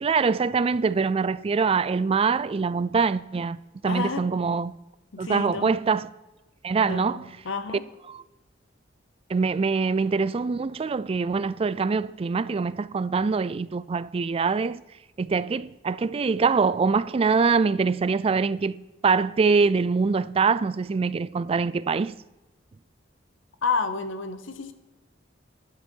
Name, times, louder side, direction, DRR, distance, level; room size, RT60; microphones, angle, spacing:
voice 1, 0.0-4.8 5.2-6.1 6.6-7.2 8.1-8.2 9.3-14.8 15.2-22.2, right 5 dB, 30° right, 0.3 m, -24 dB
voice 2, 3.9-4.3 5.1-5.7 6.9-7.8 23.6-24.7, left 4 dB, 75° left, 0.9 m, -30 dB
11.5 x 10.5 x 4.5 m
head